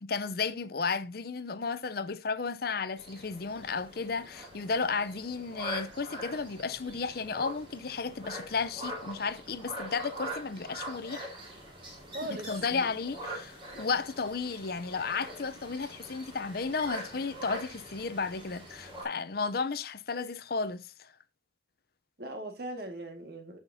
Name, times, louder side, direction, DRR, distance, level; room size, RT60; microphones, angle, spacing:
voice 1, 0.0-11.3 12.3-21.1, left 4 dB, 55° left, 0.6 m, -33 dB
sound 1, 3.0-19.0, right 1 dB, 25° right, 4.1 m, -43 dB
voice 2, 12.1-12.9 22.2-23.6, right 1 dB, 55° right, 1.8 m, -39 dB
15.0 x 5.8 x 2.7 m
head